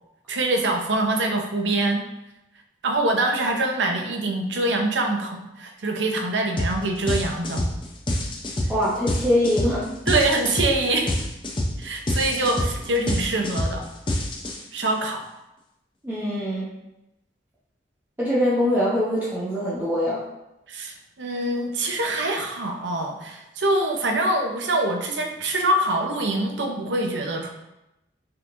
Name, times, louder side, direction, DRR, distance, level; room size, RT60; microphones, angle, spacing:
voice 1, 0.3-2.0 2.8-7.7 9.8-11.1 11.8-13.8 14.7-15.2 20.7-27.5, right 2 dB, 85° right, 3 dB, 0.7 m, -24 dB
sound 1, 6.6-6.8 7.1-14.9, left 1 dB, 30° left, 0.6 m, -26 dB
voice 2, 8.7-9.9 16.0-16.7 18.2-20.2, left 1 dB, 10° right, -9 dB, 0.9 m, -23 dB
5.6 x 3.6 x 2.6 m, 0.92 s
head